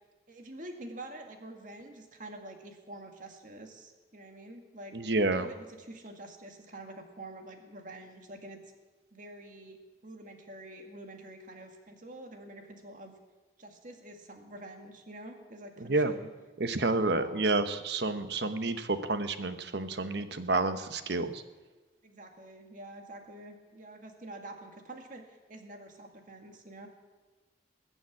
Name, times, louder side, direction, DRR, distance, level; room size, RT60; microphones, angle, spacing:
voice 1, 0.3-5.1 5.4-8.6 9.1-9.8 10.0-13.2 13.6-16.3 16.8-17.5 22.0-26.9, right 1 dB, 45° right, 3 dB, 2.0 m, -47 dB
voice 2, 4.9-5.5 15.8-16.1 16.6-21.4, right 2 dB, 70° right, 10 dB, 1.0 m, -29 dB
21.0 x 7.1 x 8.5 m, 1.3 s
head